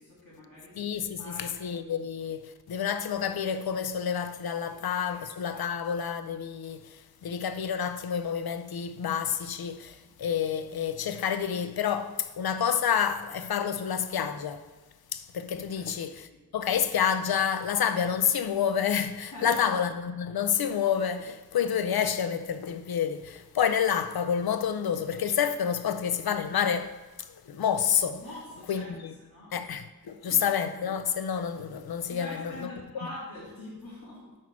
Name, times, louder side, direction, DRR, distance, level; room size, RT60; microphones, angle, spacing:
voice 1, 0.0-1.6 4.6-5.7 15.7-15.9 16.3-16.4 19.3-19.6 28.2-28.9 29.2-29.6 30.2-30.4 32.1-34.4, left 1 dB, 70° left, 2.6 m, -44 dB
voice 2, 0.8-14.7 15.1-28.2 28.7-29.1 29.5-32.7, left 8 dB, 90° left, 0.5 m, -29 dB
5.9 x 4.5 x 6.0 m
wide cardioid pair, 70°, 36 cm